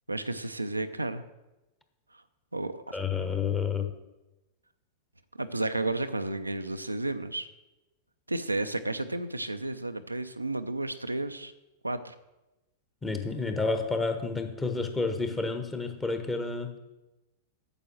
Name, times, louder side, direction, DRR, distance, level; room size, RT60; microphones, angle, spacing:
voice 1, 0.1-1.2 2.5-3.0 5.4-7.5 8.3-11.5 11.8-12.1, right 2 dB, 85° right, 9 dB, 0.5 m, -32 dB
voice 2, 2.9-3.9 13.0-16.8, left 4 dB, 15° left, 5 dB, 1.2 m, -30 dB
8.9 x 6.9 x 6.2 m, 1.0 s
figure-of-eight pair, 95°, 0 cm